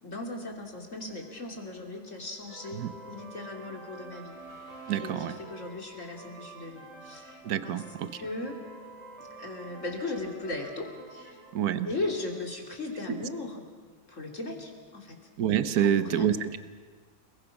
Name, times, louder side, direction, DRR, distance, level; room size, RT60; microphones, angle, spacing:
voice 1, 0.0-4.3 5.0-7.8 8.1-8.6 9.2-11.4 11.8-13.7 14.1-15.2 15.8-16.3, left 2 dB, 50° left, 2 dB, 3.4 m, -37 dB
sound 1, 0.9-12.7, right 3 dB, 90° right, 6.1 m, -48 dB
voice 2, 4.9-5.4 7.4-8.2 11.5-11.9 13.1-13.2 15.4-16.6, right 9 dB, 70° right, 12 dB, 1.4 m, -27 dB
29.5 x 20.5 x 6.0 m, 1.4 s
omnidirectional pair, 1.7 m